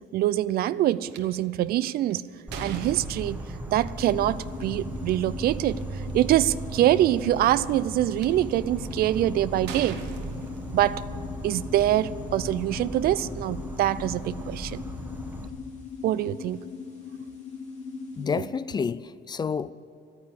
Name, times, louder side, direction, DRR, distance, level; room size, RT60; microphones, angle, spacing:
voice 1, 0.1-2.3 2.6-3.4 3.7-10.0 10.7-11.0 11.4-14.8 16.0-16.6, right 13 dB, 65° right, 0.4 m, -24 dB
sound 1, 1.1-1.2 1.8-3.7 5.0-5.1 5.8-5.9 6.1-6.5 7.3-8.3 8.9-9.2 9.7-11.1, right 7 dB, 80° right, 1.2 m, -40 dB
Insect, 2.5-15.5, right 2 dB, 10° right, 1.1 m, -37 dB
sound 2, 4.0-18.5, left 6 dB, 40° left, 3.3 m, -40 dB
voice 2, 18.2-19.7, left 6 dB, 25° left, 0.4 m, -29 dB
12.5 x 9.7 x 8.7 m
cardioid pair, 110°, 17 cm